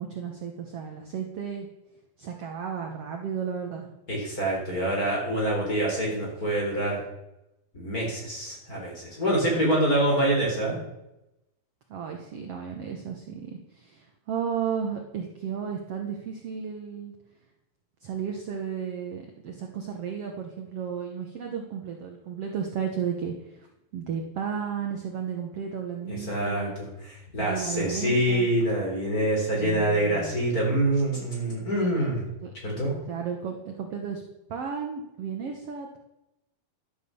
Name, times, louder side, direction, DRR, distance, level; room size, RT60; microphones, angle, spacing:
voice 1, 0.0-1.7 2.2-3.9 11.9-17.1 18.0-23.7 23.9-26.7 27.4-28.5 29.6-30.3 32.4-32.5 33.1-34.2 34.5-36.0, right 7 dB, 70° right, 2 dB, 1.4 m, -33 dB
voice 2, 4.1-7.0 7.7-10.8 26.1-32.2 32.6-32.9, right 1 dB, 20° left, -2 dB, 4.1 m, -26 dB
12.0 x 8.9 x 7.0 m, 0.90 s
omnidirectional pair, 4.5 m